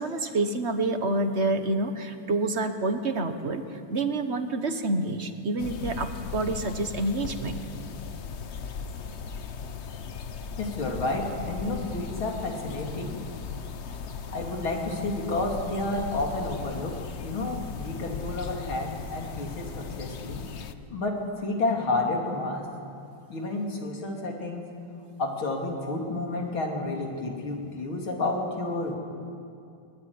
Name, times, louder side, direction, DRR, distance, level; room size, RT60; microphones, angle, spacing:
voice 1, 0.0-7.7, right 2 dB, 35° right, 7 dB, 1.5 m, -28 dB
sound 1, 5.6-20.7, left 6 dB, 55° left, 0.7 m, -38 dB
voice 2, 10.5-13.2 14.3-22.6 23.3-24.7 25.2-29.0, left 2 dB, 70° left, 1 dB, 3.9 m, -30 dB
23.0 x 20.5 x 9.7 m, 2.6 s
omnidirectional pair, 2.3 m